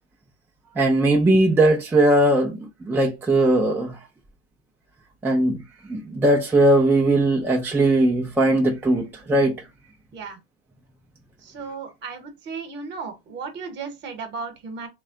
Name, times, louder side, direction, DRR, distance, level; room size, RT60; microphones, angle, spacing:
voice 1, 0.8-4.0 5.2-5.6 5.9-9.5, right 1 dB, 5° right, 0.4 m, -19 dB
voice 2, 11.4-14.9, right 5 dB, 35° right, 1.1 m, -35 dB
3.2 x 2.2 x 3.7 m
supercardioid pair, 115°, 30 cm